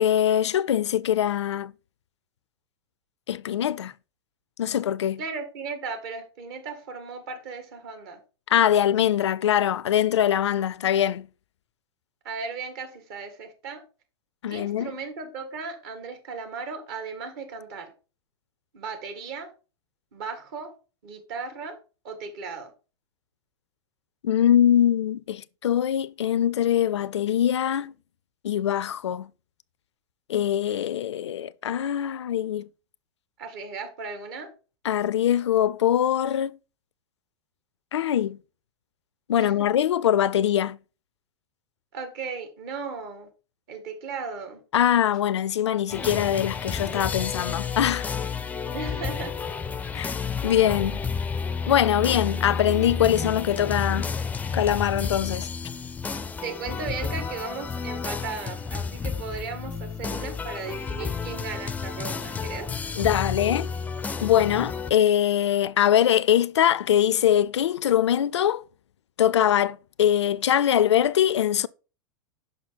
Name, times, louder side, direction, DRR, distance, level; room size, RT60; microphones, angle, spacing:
voice 1, 0.0-1.7 3.3-3.9 4.6-5.2 8.5-11.3 14.4-14.9 24.2-27.9 28.4-29.3 30.3-32.7 34.8-36.6 37.9-38.4 39.3-40.8 44.7-48.1 49.9-51.0 51.7-54.1 54.5-55.5 63.0-63.7 64.2-68.6 69.2-71.7, left 10 dB, 85° left, 0.4 m, -23 dB
voice 2, 5.2-8.2 12.2-13.8 14.5-17.9 18.7-19.5 20.1-20.7 21.0-21.8 22.0-22.7 33.4-34.5 39.3-39.5 41.9-43.3 43.7-44.6 48.7-49.4 49.9-50.2 56.4-62.7, right 5 dB, 55° right, 2.1 m, -36 dB
sound 1, 45.9-64.9, left 5 dB, 10° left, 0.4 m, -31 dB
5.9 x 5.4 x 4.1 m
hypercardioid pair, 105°, 14 cm